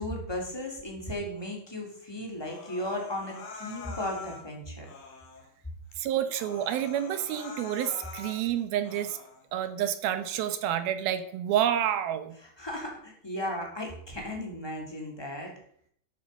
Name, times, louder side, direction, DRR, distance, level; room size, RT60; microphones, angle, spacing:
voice 1, 0.0-4.9 12.6-15.5, left 1 dB, 5° left, -1 dB, 2.4 m, -35 dB
Human voice, 2.4-4.4 4.8-5.5 5.9-6.0 6.3-8.4 8.8-9.4, left 5 dB, 65° left, 3.6 m, -44 dB
voice 2, 6.0-9.2 9.5-12.3, right 10 dB, 75° right, 10 dB, 2.7 m, -29 dB
12.0 x 8.7 x 5.4 m, 0.63 s
omnidirectional pair, 4.5 m